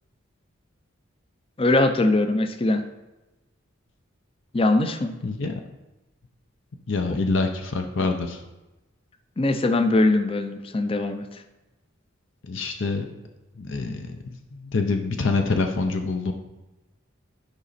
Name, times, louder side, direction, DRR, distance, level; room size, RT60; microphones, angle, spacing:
voice 1, 1.6-2.8 4.5-5.2 9.4-11.3, left 2 dB, 30° left, 8 dB, 0.5 m, -21 dB
voice 2, 5.2-5.6 6.9-8.4 12.4-13.0 13.5-14.2 14.5-16.3, left 3 dB, 70° left, 4 dB, 0.7 m, -26 dB
9.9 x 5.1 x 4.2 m, 1.0 s
head